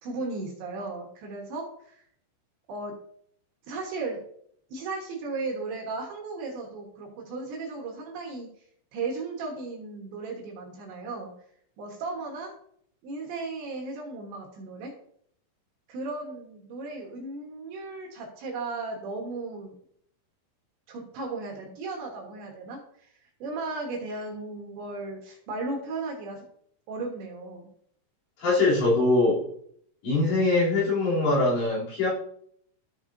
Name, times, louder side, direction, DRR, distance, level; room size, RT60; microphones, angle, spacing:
voice 1, 0.0-2.0 2.7-2.9 3.7-4.2 4.7-8.5 8.9-11.3 11.8-12.5 13.0-14.9 15.9-19.7 20.9-23.1 23.4-26.4 26.9-27.7, right 3 dB, 70° right, 0 dB, 3.2 m, -35 dB
voice 2, 28.4-29.4 30.0-32.1, left 2 dB, 60° left, -8 dB, 5.3 m, -22 dB
13.5 x 5.9 x 2.7 m, 0.65 s
omnidirectional pair, 6.0 m